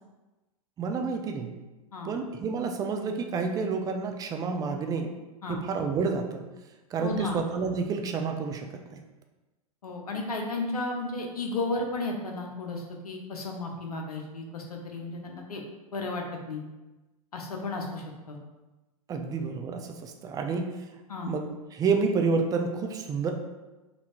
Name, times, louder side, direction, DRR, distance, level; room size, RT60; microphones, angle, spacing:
voice 1, 0.8-1.5 2.0-5.1 5.5-6.4 6.9-9.0 19.1-20.8 21.3-21.5 21.7-23.3, right 5 dB, 20° right, 5 dB, 0.4 m, -29 dB
voice 2, 7.0-7.4 9.8-15.6 15.9-16.6 17.3-18.4 21.1-21.3, left 2 dB, 80° left, 2 dB, 0.7 m, -33 dB
4.3 x 2.7 x 2.9 m, 1.1 s
figure-of-eight pair, 100°, 19 cm